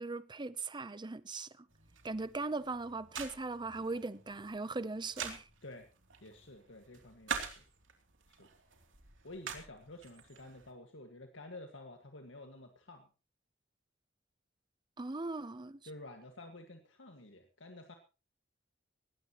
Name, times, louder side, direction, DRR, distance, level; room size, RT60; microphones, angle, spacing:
voice 1, 0.0-1.6 2.0-5.5 15.0-15.8, right 3 dB, 25° right, 0.7 m, -39 dB
sound 1, 1.7-10.7, right 6 dB, 80° right, 3.0 m, -46 dB
voice 2, 6.2-7.6 8.3-8.5 9.2-13.1 15.8-17.9, left 2 dB, 75° left, 1.9 m, -51 dB
20.0 x 16.5 x 3.0 m
head